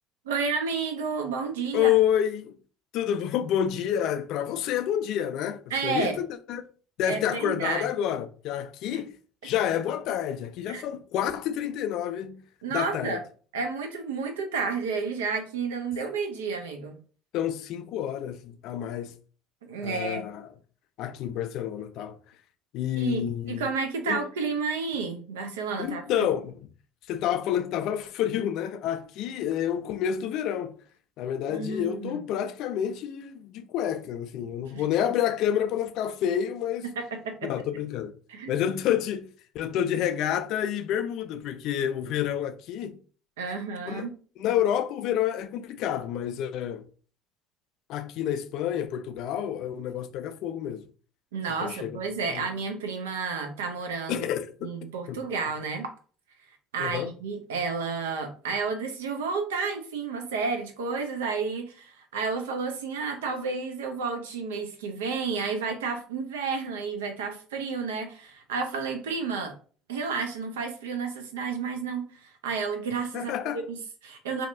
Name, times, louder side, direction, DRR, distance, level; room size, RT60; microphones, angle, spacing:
voice 1, 0.3-1.9 5.7-6.2 7.1-7.9 8.9-9.0 10.7-10.8 12.6-13.2 13.5-17.0 19.6-20.2 23.0-26.0 31.5-32.2 34.7-34.8 36.8-37.5 38.3-38.7 43.4-44.1 51.3-54.2 54.6-55.9 56.7-69.5 69.9-74.5, right 5 dB, 80° right, 0.5 m, -31 dB
voice 2, 1.7-2.5 2.9-6.7 7.0-9.2 9.4-12.4 12.7-13.2 17.3-19.2 19.8-20.5 21.0-22.2 22.7-23.7 24.1-24.2 25.8-26.6 27.1-30.7 31.2-36.9 37.4-38.2 38.5-39.3 39.5-43.0 43.8-44.1 44.4-46.9 47.9-50.9 51.6-52.0 52.3-52.5 54.1-54.8 55.1-55.3 56.8-57.1 73.1-73.6, left 10 dB, 60° left, 0.3 m, -29 dB
2.6 x 2.3 x 2.6 m
hypercardioid pair, 65°, 0 cm